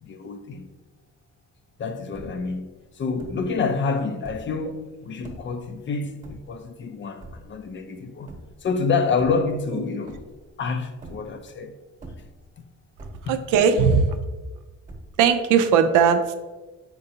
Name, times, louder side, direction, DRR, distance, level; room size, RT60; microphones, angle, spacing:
voice 1, 0.0-0.7 1.8-8.3 8.6-10.2 10.6-11.7 13.3-13.4, left 4 dB, 40° left, 0.4 m, -28 dB
sound 1, 1.7-1.8 1.9-2.6 3.2-3.6 4.1-4.6 5.2-5.6 6.2-6.8 7.2-7.7 8.3-8.7 9.1-9.8 10.1-10.6 11.0-11.5 11.9-12.6 13.0-13.5 13.9-14.5 14.9-15.4, right 1 dB, 25° right, 1.0 m, -43 dB
voice 2, 13.3-14.2 15.2-16.3, right 6 dB, 85° right, 0.5 m, -18 dB
4.5 x 3.8 x 2.7 m
cardioid pair, 90°, 30 cm